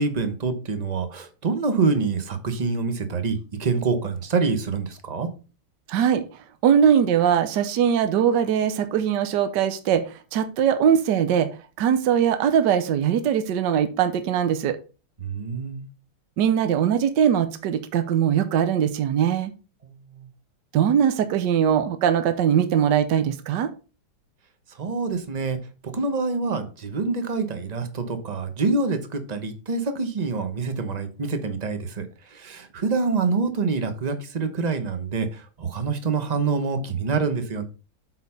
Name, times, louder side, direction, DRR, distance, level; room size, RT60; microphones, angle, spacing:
voice 1, 0.0-5.3 15.2-15.8 19.8-20.2 24.8-25.6 25.8-32.1 32.3-37.6, right 4 dB, 30° right, 9 dB, 0.7 m, -26 dB
voice 2, 5.9-6.2 6.6-10.0 10.3-11.5 11.8-14.8 16.4-19.5 20.7-23.7, right 8 dB, 65° right, 10 dB, 1.4 m, -21 dB
8.2 x 4.4 x 5.5 m, 0.33 s
omnidirectional pair, 2.3 m